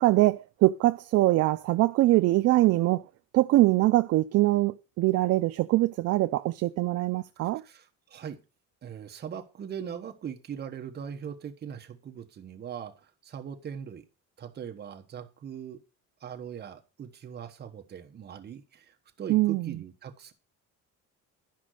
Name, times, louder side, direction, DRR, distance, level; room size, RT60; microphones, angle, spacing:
voice 1, 0.0-3.0 3.3-7.6 19.3-19.8, right 17 dB, 50° right, 0.4 m, -23 dB
voice 2, 7.4-8.4 8.8-14.1 14.4-15.8 16.2-20.3, right 8 dB, 30° right, 1.2 m, -40 dB
12.0 x 5.2 x 6.4 m
cardioid pair, 165°, 33 cm